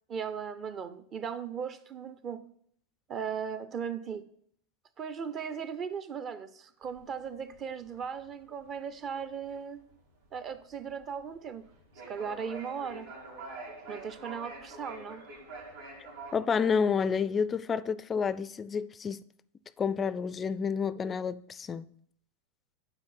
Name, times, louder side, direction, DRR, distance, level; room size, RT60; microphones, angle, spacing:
voice 1, 0.1-2.4 3.1-4.2 5.0-9.8 10.3-11.6 12.1-13.1 13.9-15.2, right 7 dB, 35° right, 0.6 m, -37 dB
sound 1, 6.8-16.4, right 3 dB, 80° right, 2.5 m, -46 dB
voice 2, 16.3-19.2 19.8-21.9, left 6 dB, 25° left, 0.3 m, -29 dB
8.9 x 3.9 x 5.8 m
hypercardioid pair, 110°, 0 cm